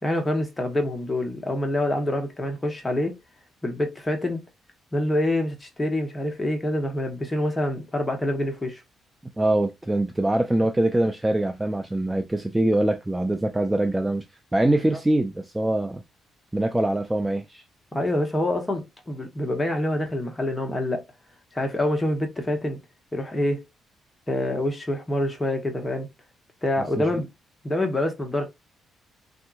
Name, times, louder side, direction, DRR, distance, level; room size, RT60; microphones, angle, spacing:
voice 1, 0.0-3.2 3.6-4.4 4.9-8.8 17.9-21.0 21.5-22.8 23.1-23.7 24.3-26.1 26.6-27.3 27.6-28.5, left 1 dB, 15° left, 1.0 m, -26 dB
voice 2, 9.4-14.2 14.5-16.0 16.5-17.6 27.0-27.1, right 1 dB, 10° right, 0.4 m, -23 dB
3.5 x 2.7 x 2.4 m
cardioid pair, 90°, 0 cm